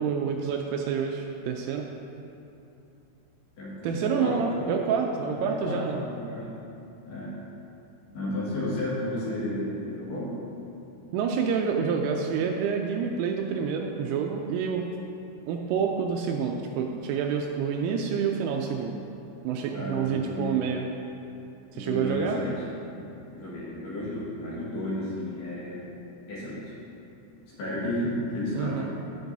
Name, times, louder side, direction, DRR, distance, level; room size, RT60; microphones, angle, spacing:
voice 1, 0.0-1.8 3.8-6.0 11.1-14.9 15.5-18.9 19.4-20.9 21.7-22.4 28.6-28.9, right 6 dB, 85° right, 2 dB, 2.9 m, -28 dB
voice 2, 3.6-4.7 5.4-5.8 6.1-6.5 7.1-7.3 8.1-10.3 19.7-20.6 21.7-22.6 23.3-25.9 26.3-26.7 27.5-28.9, left 1 dB, 60° left, -9 dB, 3.3 m, -32 dB
15.5 x 6.0 x 2.7 m, 2.8 s
omnidirectional pair, 5.9 m